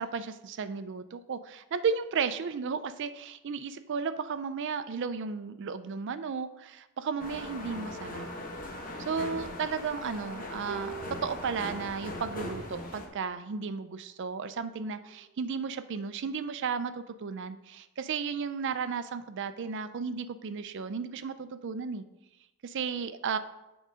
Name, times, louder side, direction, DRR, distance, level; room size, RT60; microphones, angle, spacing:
voice 1, 0.0-8.3 9.0-10.9 11.2-22.0 22.6-23.4, right 5 dB, 55° right, 11 dB, 0.4 m, -34 dB
sound 1, 7.2-13.1, left 1 dB, 40° left, 1.0 m, -40 dB
sound 2, 10.7-13.1 14.2-14.3, right 6 dB, 90° right, 0.9 m, -45 dB
7.5 x 3.9 x 5.0 m, 0.96 s
head